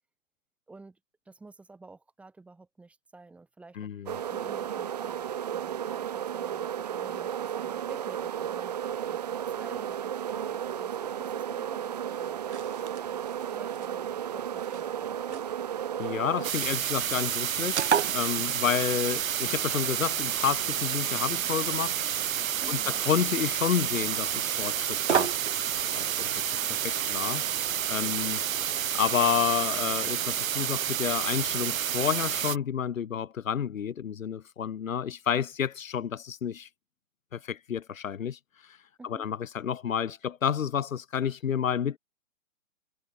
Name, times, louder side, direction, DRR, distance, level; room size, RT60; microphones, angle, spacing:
voice 1, 0.7-1.0 1.2-3.9 4.3-13.2 13.5-15.5 22.6-23.0 28.1-28.3 39.0-39.3, right 3 dB, 5° right, 5.1 m, -51 dB
voice 2, 3.8-4.1 16.0-22.0 22.7-25.3 25.9-27.4 27.9-28.4 28.9-36.7 37.3-38.4 38.7-38.8 39.0-42.0, left 8 dB, 80° left, 1.7 m, -30 dB
sound 1, 4.1-16.5, right 9 dB, 30° right, 0.9 m, -33 dB
sound 2, 11.9-31.7, right 8 dB, 55° right, 2.3 m, -38 dB
sound 3, 16.4-32.6, right 10 dB, 90° right, 0.9 m, -30 dB
hypercardioid pair, 175°, 40 cm